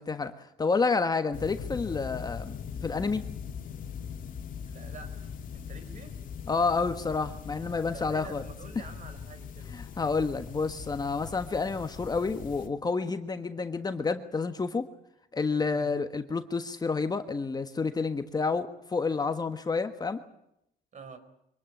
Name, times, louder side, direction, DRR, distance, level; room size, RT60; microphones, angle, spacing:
voice 1, 0.0-3.3 6.5-8.4 9.7-14.9 15.3-20.2, left 4 dB, 25° left, 8 dB, 1.4 m, -29 dB
sound 1, 1.3-12.7, left 7 dB, 55° left, 2.4 m, -41 dB
voice 2, 4.7-6.2 7.9-9.7 15.7-16.0 20.9-21.2, right 4 dB, 45° right, 10 dB, 4.4 m, -48 dB
25.0 x 18.5 x 9.3 m, 0.79 s
cardioid pair, 110°, 17 cm